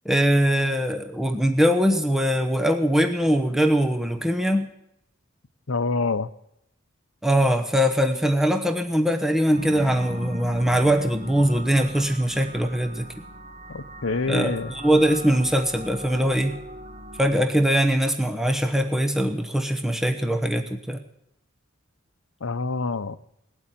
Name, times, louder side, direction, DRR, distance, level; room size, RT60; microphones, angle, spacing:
voice 1, 0.0-4.7 7.2-13.1 14.3-16.6 17.2-21.0, equal, ahead, 6 dB, 1.0 m, -22 dB
voice 2, 5.7-6.3 13.7-14.7 22.4-23.2, left 3 dB, 70° left, 12 dB, 0.8 m, -26 dB
sound 1, 9.5-17.3, equal, 35° right, 1.3 m, -39 dB
19.5 x 8.3 x 9.1 m, 0.78 s
head